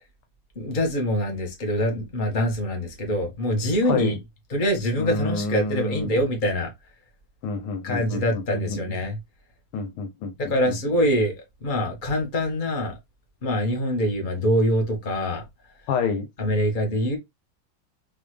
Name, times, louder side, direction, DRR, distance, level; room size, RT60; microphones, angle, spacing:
voice 1, 0.5-4.2 4.5-6.7 7.8-9.2 10.5-13.0 13.4-15.4 16.4-17.2, equal, 25° left, 1.4 m, -24 dB
voice 2, 3.9-4.2 5.0-6.1 7.4-8.8 9.7-10.3 10.7-10.8 15.9-16.3, left 4 dB, 80° left, 1.8 m, -28 dB
4.2 x 3.5 x 3.3 m
omnidirectional pair, 2.4 m